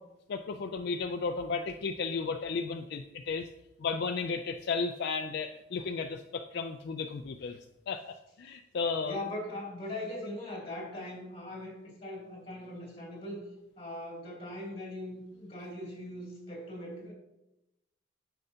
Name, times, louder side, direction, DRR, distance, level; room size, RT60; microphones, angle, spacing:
voice 1, 0.3-3.5 3.8-7.6 7.9-8.1 8.4-9.2, left 4 dB, 60° left, 6 dB, 0.4 m, -34 dB
voice 2, 9.0-13.4 13.8-17.1, left 1 dB, 30° left, -2 dB, 2.6 m, -40 dB
10.0 x 6.8 x 2.8 m, 0.92 s
head